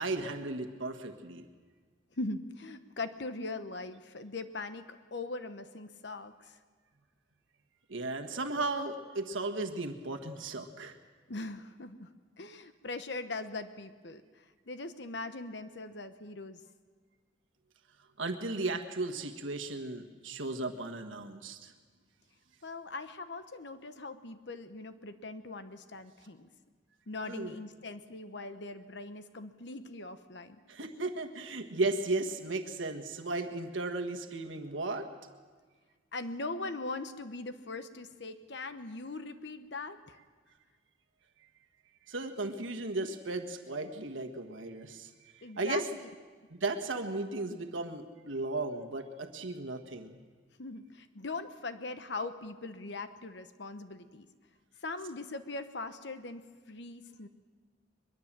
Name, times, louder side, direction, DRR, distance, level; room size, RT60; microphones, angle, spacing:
voice 1, 0.0-1.5 7.9-10.9 18.2-21.7 27.2-27.5 30.7-35.1 42.1-45.1 45.6-45.9 46.5-50.2, right 2 dB, 85° right, 4 dB, 1.5 m, -35 dB
voice 2, 2.2-6.6 11.3-12.1 12.4-16.6 22.6-26.5 27.1-30.6 36.1-40.2 45.4-46.1 50.6-54.3 54.8-57.3, left 3 dB, 65° left, 9 dB, 1.1 m, -41 dB
23.0 x 22.0 x 7.5 m, 1.5 s
head